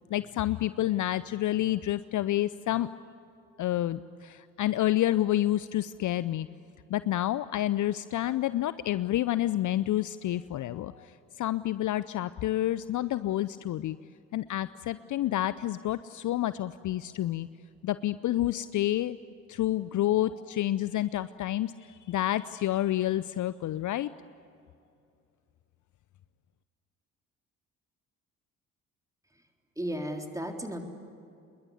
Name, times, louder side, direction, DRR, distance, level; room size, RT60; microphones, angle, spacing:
voice 1, 0.1-2.9 3.6-6.5 6.9-11.1 11.4-14.0 14.3-17.5 17.8-19.2 19.5-24.1, left 14 dB, 45° left, 16 dB, 0.7 m, -29 dB
voice 2, 29.8-30.8, equal, 10° right, 3 dB, 3.8 m, -34 dB
27.0 x 21.5 x 9.8 m, 2.5 s
hypercardioid pair, 45°, 41 cm